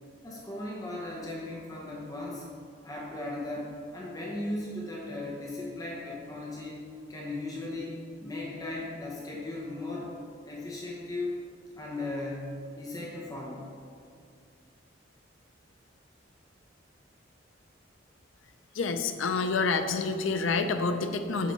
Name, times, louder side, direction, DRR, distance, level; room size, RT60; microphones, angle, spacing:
voice 1, 0.2-2.4 2.8-6.8 7.1-10.1 10.5-11.3 11.8-13.6, left 2 dB, 20° left, -3 dB, 0.9 m, -37 dB
voice 2, 18.7-21.5, left 4 dB, 85° left, 8 dB, 0.6 m, -28 dB
7.6 x 6.5 x 4.1 m, 2.3 s
head